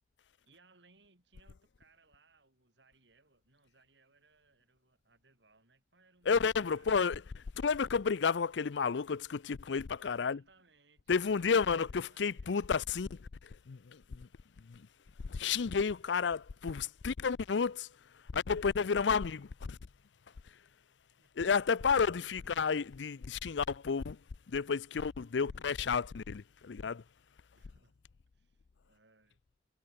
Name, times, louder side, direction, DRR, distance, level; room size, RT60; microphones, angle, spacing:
voice 1, 0.4-6.4 6.6-7.3 9.9-12.7 21.2-21.3 21.9-23.0 25.4-25.6 27.5-28.0 28.3-29.4, right 3 dB, 85° right, 5.6 m, -67 dB
voice 2, 6.3-7.2 7.6-10.4 11.1-14.3 14.6-14.9 15.2-17.9 18.3-19.8 21.4-24.2 24.5-27.0, left 5 dB, 90° left, 0.5 m, -31 dB
head